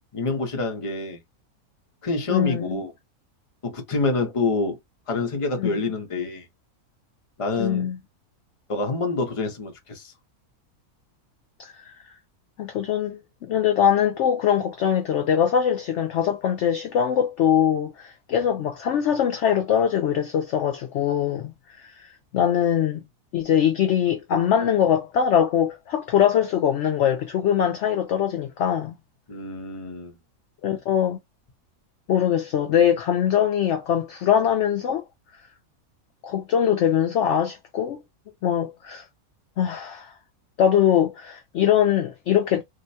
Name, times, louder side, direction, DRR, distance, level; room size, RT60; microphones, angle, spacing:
voice 1, 0.1-1.2 2.0-2.9 3.6-4.8 5.1-6.4 7.4-7.9 8.7-10.1 29.3-30.1, left 3 dB, 30° left, 0.7 m, -27 dB
voice 2, 2.3-2.8 5.6-5.8 7.6-8.0 11.6-11.9 12.6-23.0 23.3-28.9 30.6-31.2 32.1-35.0 36.2-38.0 38.4-39.1 39.6-40.1 40.6-42.6, left 9 dB, 70° left, 0.7 m, -22 dB
3.7 x 2.2 x 2.7 m
omnidirectional pair, 1.6 m